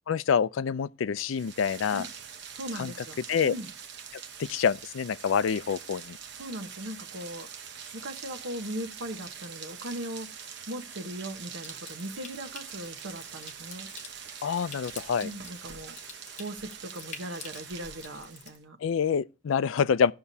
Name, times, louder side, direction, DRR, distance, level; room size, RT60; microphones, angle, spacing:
voice 1, 0.1-2.1 2.7-2.9 3.3-3.5 4.1-6.2 14.4-15.3 18.8-20.1, left 7 dB, 90° left, 0.4 m, -27 dB
Rain, 1.2-18.6, right 7 dB, 60° right, 0.9 m, -44 dB
voice 2, 2.5-3.7 6.3-7.5 7.9-10.4 10.7-13.9 15.2-15.9 16.4-18.8, right 1 dB, 85° right, 1.1 m, -39 dB
Water tap faucet / Sink (filling or washing) / Trickle dribble, 11.6-18.6, left 6 dB, 40° left, 0.9 m, -49 dB
16.0 x 5.8 x 2.7 m
head